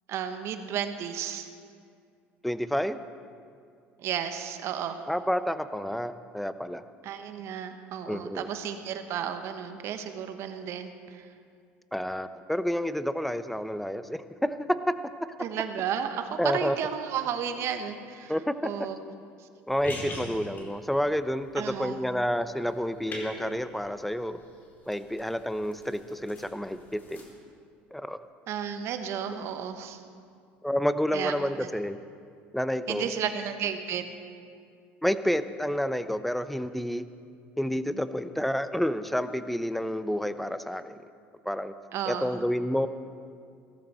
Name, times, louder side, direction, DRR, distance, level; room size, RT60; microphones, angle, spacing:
voice 1, 0.1-1.5 4.0-5.0 7.0-11.3 15.4-18.3 18.6-19.0 21.6-22.0 28.5-30.0 31.1-31.3 32.9-34.0 41.9-42.4, right 8 dB, 60° right, 8 dB, 1.2 m, -33 dB
voice 2, 2.4-3.0 5.1-6.8 8.1-8.5 11.9-14.9 16.4-16.8 18.3-18.7 19.7-24.4 24.9-27.2 27.9-28.2 30.6-32.0 32.5-33.1 35.0-37.0 37.6-41.0 41.4-41.7 42.1-42.9, equal, 5° left, 12 dB, 0.7 m, -29 dB
sound 1, 19.7-27.2, left 1 dB, 40° left, 3.9 m, -44 dB
17.0 x 14.0 x 4.3 m, 2.3 s
hypercardioid pair, 80°, 5 cm